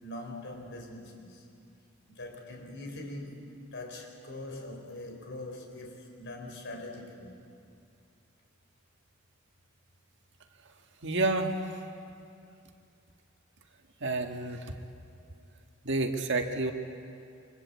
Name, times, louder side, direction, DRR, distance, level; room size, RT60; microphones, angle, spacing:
voice 1, 0.0-1.4 2.1-7.4, left 1 dB, 60° left, 2 dB, 4.6 m, -42 dB
voice 2, 11.0-11.5 14.0-14.7 15.8-16.7, right 2 dB, 60° right, 4 dB, 1.9 m, -29 dB
28.5 x 24.5 x 8.5 m, 2.5 s
head